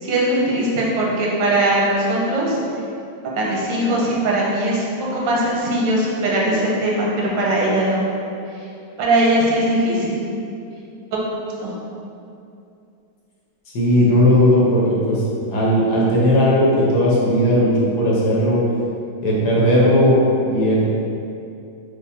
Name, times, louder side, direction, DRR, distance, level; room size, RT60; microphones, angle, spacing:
voice 1, 0.0-2.6 3.3-4.8 5.1-8.0 9.0-10.2 11.6-11.7, right 1 dB, 85° right, -4 dB, 1.5 m, -20 dB
voice 2, 13.7-15.2 15.5-18.6 19.2-20.2 20.5-20.9, equal, 65° left, -6 dB, 1.4 m, -16 dB
5.5 x 2.2 x 3.4 m, 2.6 s
omnidirectional pair, 1.9 m